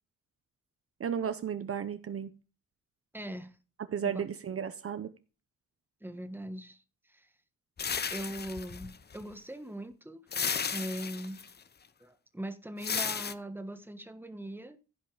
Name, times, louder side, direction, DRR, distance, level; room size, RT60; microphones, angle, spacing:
voice 1, 1.0-2.3 3.9-5.1, right 8 dB, 45° right, 0.8 m, -34 dB
voice 2, 3.1-3.6 4.0-4.2 6.0-6.8 7.1-7.3 8.1-10.2 10.7-11.5 12.0-14.8, right 1 dB, 5° right, 1.4 m, -41 dB
sound 1, 7.8-9.2 10.3-11.5 12.8-13.3, left 6 dB, 30° left, 0.8 m, -34 dB
15.5 x 5.6 x 4.9 m
wide cardioid pair, 140°, 31 cm